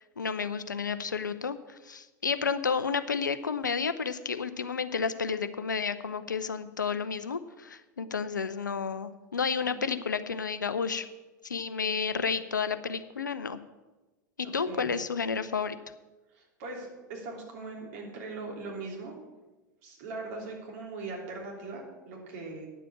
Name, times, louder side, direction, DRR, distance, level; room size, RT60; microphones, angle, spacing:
voice 1, 0.2-11.1 11.4-13.6 14.5-15.8, left 6 dB, 80° left, 12 dB, 0.6 m, -31 dB
voice 2, 9.6-10.3 14.7-15.0 16.3-19.2 19.8-22.7, right 3 dB, 50° right, -1 dB, 3.3 m, -40 dB
10.0 x 7.6 x 7.2 m, 1.1 s
figure-of-eight pair, 85°, 10 cm